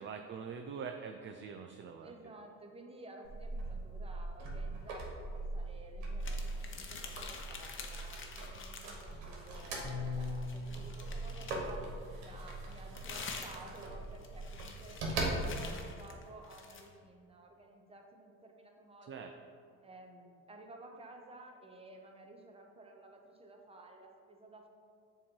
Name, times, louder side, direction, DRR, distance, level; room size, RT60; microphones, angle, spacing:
voice 1, 0.0-2.1 19.1-19.3, right 6 dB, 35° right, 5 dB, 0.4 m, -44 dB
voice 2, 2.0-5.3 5.5-11.9 12.2-19.3 19.8-24.7, right 2 dB, 15° right, 2 dB, 0.8 m, -54 dB
sound 1, 3.2-15.9, right 2 dB, 85° right, 1.2 m, -41 dB
sound 2, 6.2-9.1 9.4-11.8 12.5-16.9, left 5 dB, 35° left, 0.8 m, -48 dB
Bass guitar, 9.8-16.1, left 4 dB, 60° left, 1.3 m, -46 dB
7.1 x 2.9 x 4.5 m, 2.3 s
supercardioid pair, 80°, 35 cm